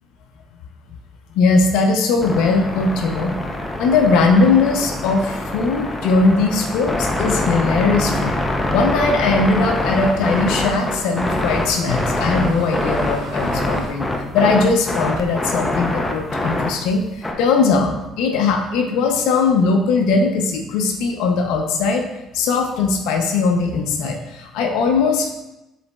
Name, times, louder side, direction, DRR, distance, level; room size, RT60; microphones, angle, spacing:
voice 1, 1.3-3.4 3.8-8.3 8.7-14.0 14.3-22.1 22.3-25.4, left 4 dB, 85° left, 3 dB, 0.5 m, -19 dB
sound 1, 2.2-17.3, left 1 dB, 15° left, 0.5 m, -24 dB
sound 2, 8.8-13.9, right 2 dB, 85° right, 1.1 m, -36 dB
5.0 x 3.9 x 2.2 m, 0.94 s
cardioid pair, 130°, 0 cm